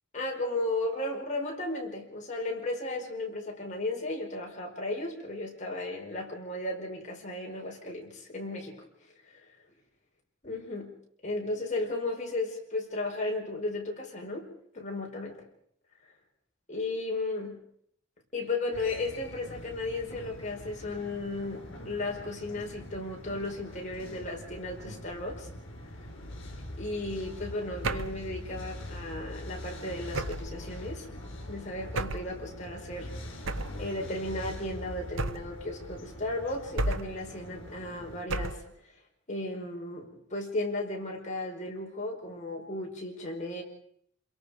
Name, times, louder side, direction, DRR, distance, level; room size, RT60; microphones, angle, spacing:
voice 1, 0.1-8.8 9.3-9.4 10.4-10.9 11.2-14.5 14.7-15.4 16.7-17.6 18.3-25.5 26.8-31.1 31.5-33.1 33.8-38.6 39.3-43.6, left 2 dB, 40° left, 0 dB, 5.0 m, -35 dB
sound 1, 18.7-38.2, left 1 dB, 80° left, 4.5 m, -43 dB
sound 2, 27.8-28.2 30.1-30.6 31.9-32.3 33.5-33.8 35.2-35.6 36.8-37.2 38.3-38.7, right 2 dB, 75° right, 1.0 m, -32 dB
27.5 x 22.5 x 5.1 m, 0.67 s
head